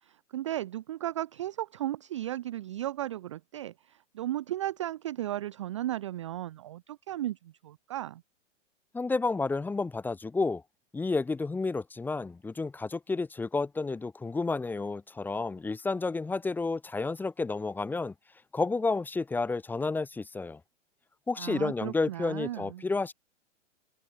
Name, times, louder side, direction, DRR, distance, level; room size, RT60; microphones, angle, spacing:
voice 1, 0.0-8.2 21.4-22.8, right 13 dB, 25° right, 0.4 m, -35 dB
voice 2, 8.9-10.6 10.9-18.1 18.5-20.6 21.3-23.1, left 3 dB, 5° left, 0.9 m, -31 dB
open air
figure-of-eight pair, 110°, 38 cm